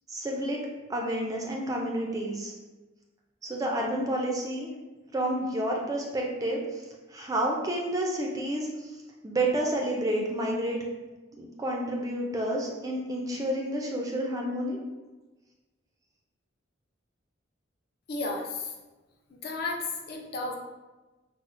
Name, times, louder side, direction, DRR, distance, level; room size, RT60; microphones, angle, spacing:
voice 1, 0.1-2.5 3.4-4.7 5.1-10.8 11.4-14.8, right 1 dB, 15° right, -1 dB, 0.3 m, -30 dB
voice 2, 18.1-18.7 19.3-20.6, left 3 dB, 50° left, 1 dB, 0.4 m, -33 dB
4.1 x 2.0 x 2.5 m, 1.2 s
head